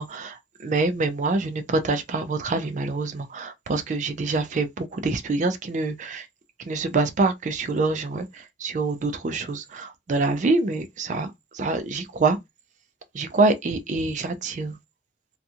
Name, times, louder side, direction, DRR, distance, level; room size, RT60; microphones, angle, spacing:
voice 1, 0.0-6.3 6.7-12.4 13.1-14.8, right 3 dB, 40° right, 0.3 m, -26 dB
2.4 x 2.2 x 2.7 m
head